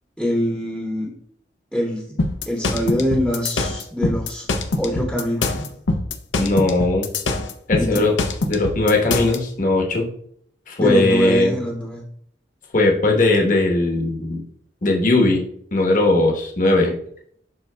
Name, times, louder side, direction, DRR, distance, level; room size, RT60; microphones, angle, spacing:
voice 1, 0.2-1.1 1.7-2.2 2.5-4.5 4.8-5.7 7.8-8.1 10.8-12.0, left 1 dB, ahead, -2 dB, 0.9 m, -23 dB
sound 1, 2.2-9.4, left 2 dB, 85° left, 0.7 m, -23 dB
voice 2, 6.4-7.1 7.7-8.1 8.5-10.1 10.7-11.6 12.7-14.4 14.8-15.4 15.7-16.9, left 2 dB, 45° left, 1 dB, 1.0 m, -18 dB
11.5 x 3.9 x 2.2 m, 0.64 s
head